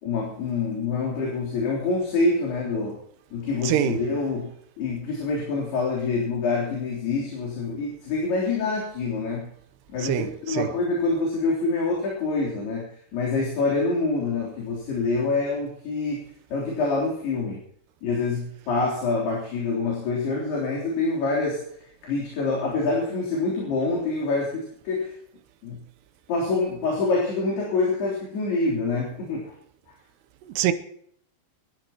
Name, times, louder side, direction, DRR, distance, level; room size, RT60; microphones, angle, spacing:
voice 1, 0.0-3.0 3.3-4.5 4.8-9.5 9.9-12.8 13.1-16.2 16.5-17.6 18.0-21.6 22.0-25.1 25.6-25.8 26.3-29.4, left 3 dB, 75° left, 5.6 m, -26 dB
voice 2, 3.6-4.0 10.0-10.7 30.4-30.7, right 11 dB, 90° right, 3.0 m, -25 dB
26.0 x 13.5 x 3.0 m
omnidirectional pair, 4.7 m